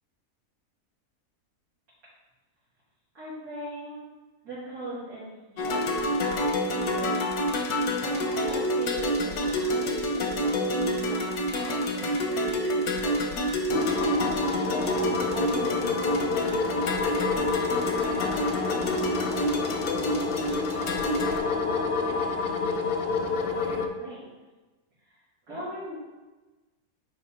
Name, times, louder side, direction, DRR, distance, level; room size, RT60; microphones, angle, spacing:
voice 1, 3.1-4.0 4.4-7.2 7.8-13.6 14.5-17.5 18.0-24.3 25.0-26.0, right 1 dB, 80° right, -12 dB, 2.9 m, -41 dB
sound 1, 5.6-21.4, equal, 85° left, 1.5 m, -28 dB
sound 2, 13.7-23.9, left 4 dB, 60° left, 0.6 m, -28 dB
9.6 x 3.4 x 4.3 m, 1.2 s
omnidirectional pair, 1.6 m